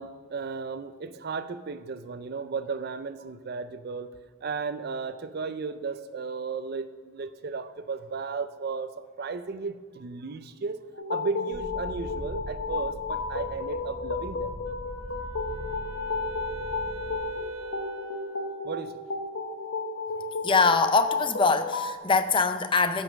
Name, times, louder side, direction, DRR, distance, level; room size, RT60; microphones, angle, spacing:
voice 1, 0.0-4.1 4.4-8.9 9.2-10.8 11.1-14.6 18.6-19.0, right 4 dB, 50° right, 12 dB, 0.5 m, -34 dB
sound 1, 10.9-21.9, left 4 dB, 80° left, 1.2 m, -33 dB
sound 2, 11.5-17.2, equal, 60° left, 3.6 m, -41 dB
Wind instrument woodwind instrument, 14.6-18.7, right 4 dB, 85° right, 0.7 m, -42 dB
voice 2, 20.4-23.0, left 4 dB, 25° left, 10 dB, 0.5 m, -23 dB
14.5 x 5.3 x 6.2 m, 1.5 s
head